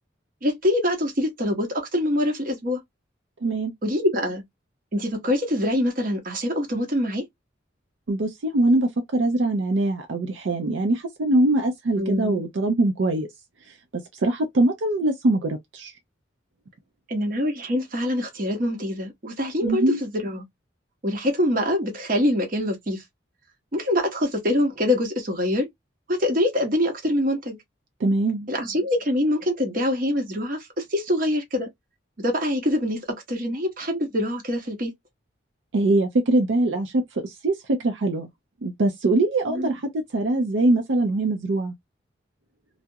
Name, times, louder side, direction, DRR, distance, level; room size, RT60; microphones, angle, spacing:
voice 1, 0.4-2.8 3.8-4.4 4.9-7.2 12.0-12.4 17.1-20.5 21.0-23.0 23.7-25.7 26.1-27.6 28.5-31.7 32.2-34.9 39.5-39.8, left 1 dB, 45° right, 0.8 m, -24 dB
voice 2, 3.4-3.7 8.1-13.3 14.2-15.9 19.6-20.0 28.0-28.5 35.7-38.3 38.6-41.7, right 2 dB, 75° right, 0.5 m, -22 dB
2.3 x 2.0 x 2.6 m
head